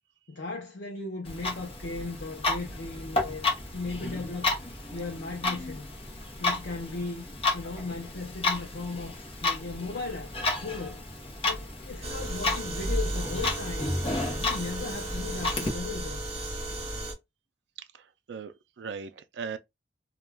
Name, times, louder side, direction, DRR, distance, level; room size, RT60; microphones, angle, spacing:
voice 1, 0.3-3.5 3.7-4.6 4.9-5.9 6.4-7.2 7.5-9.2 9.4-10.3 10.6-11.0 11.4-14.0 14.4-16.2, left 3 dB, 75° left, 0.6 m, -36 dB
Clock, 1.2-15.7, left 2 dB, 30° left, 0.7 m, -32 dB
sound 1, 12.0-17.1, right 1 dB, 35° right, 1.1 m, -35 dB
voice 2, 17.9-19.6, right 5 dB, 70° right, 0.4 m, -39 dB
2.3 x 2.2 x 3.2 m
head